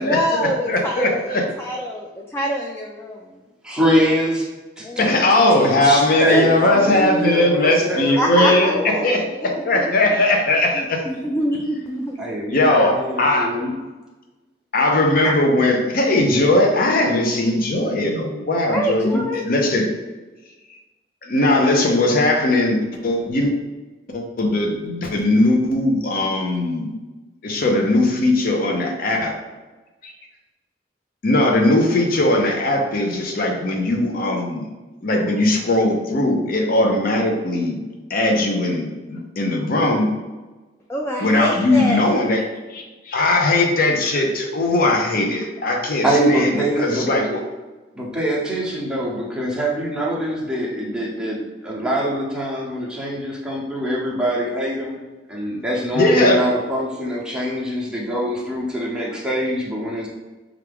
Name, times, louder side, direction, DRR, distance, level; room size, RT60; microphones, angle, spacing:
voice 1, 0.0-3.3 4.8-5.9 6.3-6.5 6.8-6.9 8.2-8.7 9.4-9.9 10.7-12.2 15.2-15.3 18.7-19.4 40.9-42.1, equal, 15° left, -1 dB, 0.3 m, -25 dB
voice 2, 0.7-1.4 5.0-11.0 12.5-13.5 14.7-19.9 21.2-23.5 24.1-27.0 27.4-29.3 30.0-30.1 31.2-34.7 35.0-37.8 38.1-40.1 41.2-42.4 42.7-47.4 56.0-56.4, left 2 dB, 55° left, 2 dB, 0.6 m, -19 dB
voice 3, 3.6-4.5 4.8-5.1 5.5-9.3 12.2-13.7 46.0-47.1 47.9-55.0 55.3-60.1, equal, 5° right, -5 dB, 0.8 m, -23 dB
4.5 x 2.4 x 3.4 m, 1.2 s
head